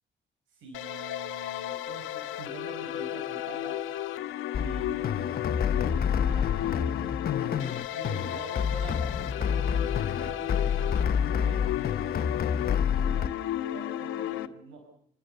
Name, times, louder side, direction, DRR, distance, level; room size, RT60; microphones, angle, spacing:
voice 1, 0.5-3.8 4.6-5.2 5.7-7.0 7.3-9.8 10.2-11.7 13.0-13.3 13.7-14.8, right 4 dB, 85° right, 3 dB, 5.6 m, -45 dB
sound 1, 0.7-14.5, left 12 dB, 90° left, 1.3 m, -34 dB
sound 2, 4.5-13.3, left 7 dB, 50° left, 1.1 m, -28 dB
26.5 x 20.5 x 6.8 m, 0.63 s
cardioid pair, 90°, 20 cm